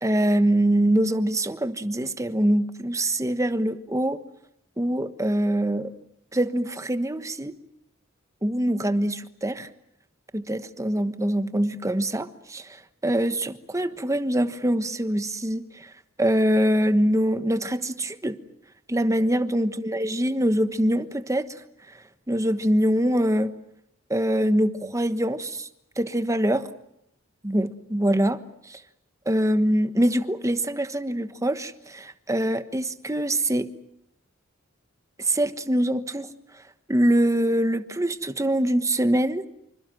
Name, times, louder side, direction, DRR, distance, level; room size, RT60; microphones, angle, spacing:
voice 1, 0.0-4.2 4.8-5.9 6.3-7.5 8.4-9.7 10.3-12.8 13.0-15.9 16.2-18.4 18.9-21.5 22.3-23.5 24.1-25.7 26.0-26.7 27.4-28.4 28.7-28.8 29.3-33.7 35.2-36.3 36.9-39.4, right 1 dB, 15° right, 10 dB, 1.2 m, -24 dB
26.5 x 26.0 x 7.8 m, 0.78 s
head